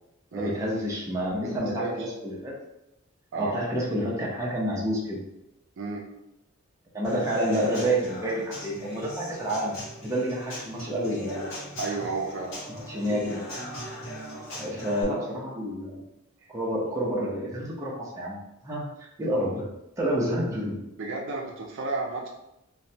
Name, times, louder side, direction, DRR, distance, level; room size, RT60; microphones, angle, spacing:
voice 1, 0.3-2.5 3.3-5.2 6.9-11.5 12.9-13.5 14.5-16.0 16.5-18.4 18.6-19.6 20.0-20.8, right 1 dB, 15° right, -5 dB, 0.6 m, -29 dB
voice 2, 1.4-2.1 3.3-3.6 5.8-6.0 11.8-12.5 21.0-22.3, right 3 dB, 60° right, 0 dB, 0.4 m, -32 dB
Human voice / Acoustic guitar / Drum, 7.0-15.0, left 1 dB, 70° left, 1.0 m, -39 dB
3.0 x 2.1 x 2.7 m, 0.87 s
head